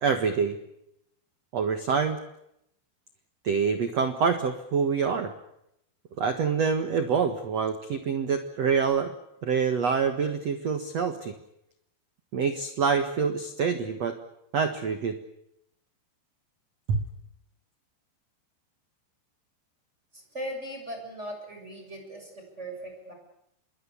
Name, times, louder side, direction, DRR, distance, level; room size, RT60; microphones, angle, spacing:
voice 1, 0.0-0.6 1.5-2.2 3.4-5.3 6.2-9.1 9.4-11.3 12.3-14.2 14.5-15.2 16.9-17.0, right 6 dB, 60° right, 8 dB, 1.8 m, -26 dB
voice 2, 20.1-23.1, right 1 dB, 15° right, 3 dB, 7.4 m, -39 dB
27.5 x 22.0 x 8.4 m, 0.80 s
omnidirectional pair, 5.2 m